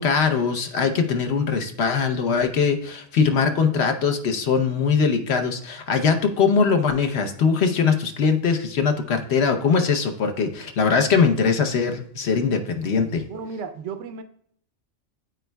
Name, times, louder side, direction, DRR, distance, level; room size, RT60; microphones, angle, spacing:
voice 1, 0.0-13.2, left 5 dB, 65° left, 5 dB, 1.0 m, -21 dB
voice 2, 13.3-14.2, right 5 dB, 80° right, 9 dB, 1.0 m, -33 dB
11.5 x 4.5 x 2.2 m, 0.64 s
omnidirectional pair, 1.2 m